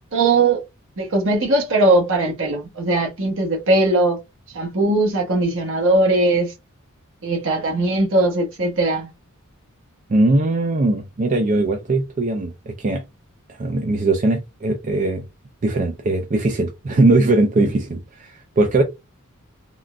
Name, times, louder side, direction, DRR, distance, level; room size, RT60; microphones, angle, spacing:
voice 1, 0.1-0.6 1.0-4.2 4.5-6.5 7.2-9.1, right 2 dB, 60° right, 1.1 m, -19 dB
voice 2, 10.1-13.0 13.6-15.2 15.6-18.8, right 2 dB, 35° right, 0.4 m, -20 dB
3.6 x 2.2 x 2.4 m
head